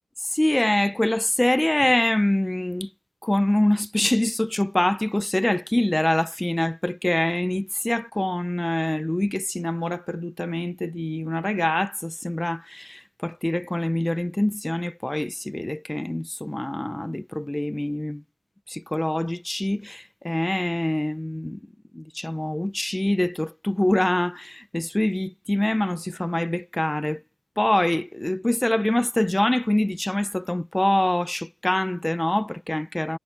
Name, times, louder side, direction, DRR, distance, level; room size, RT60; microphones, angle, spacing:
voice 1, 0.2-2.9 3.2-18.2 18.7-21.6 21.9-27.2 27.6-33.2, left 1 dB, 10° left, 0.7 m, -25 dB
wide cardioid pair, 110°, 0 cm